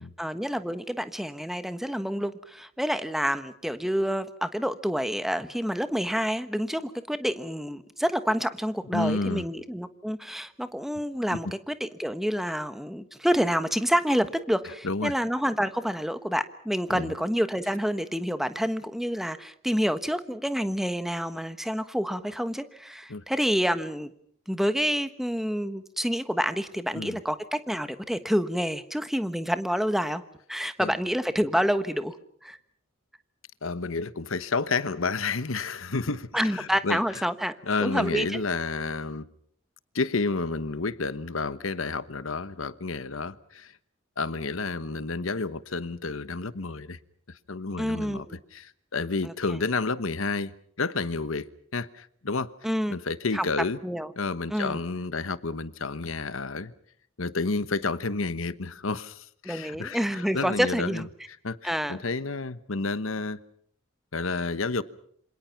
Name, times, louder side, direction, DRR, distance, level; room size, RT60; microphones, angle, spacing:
voice 1, 0.2-24.1 24.5-30.2 30.5-32.2 32.4-32.6 36.3-38.4 47.8-48.4 49.2-49.3 52.6-53.0 53.3-53.4 53.8-54.1 54.5-54.8 59.4-61.1 61.6-62.0, equal, ahead, 11 dB, 1.2 m, -28 dB
voice 2, 8.9-9.4 14.8-15.1 16.9-17.1 23.1-23.2 26.9-27.2 30.8-30.9 33.6-37.0 37.7-39.3 39.9-43.8 44.2-47.0 47.3-48.3 48.5-50.5 50.8-52.5 52.9-53.8 54.2-56.7 57.2-63.4 64.1-64.8, left 3 dB, 80° left, 15 dB, 1.1 m, -30 dB
28.0 x 26.0 x 5.9 m, 0.64 s
head